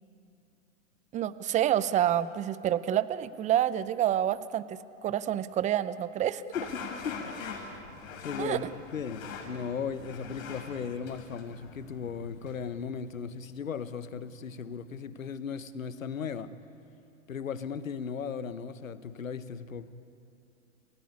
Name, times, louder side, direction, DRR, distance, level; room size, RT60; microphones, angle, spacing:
voice 1, 1.1-6.4 8.4-8.7, right 11 dB, 20° right, 16 dB, 0.6 m, -28 dB
voice 2, 6.5-7.8 8.2-8.7 8.9-16.5 17.3-19.9, left 6 dB, 85° left, 12 dB, 1.4 m, -37 dB
sound 1, 6.5-12.8, left 5 dB, 45° left, 6.4 m, -43 dB
30.0 x 17.0 x 9.8 m, 2.6 s
hypercardioid pair, 115°, 39 cm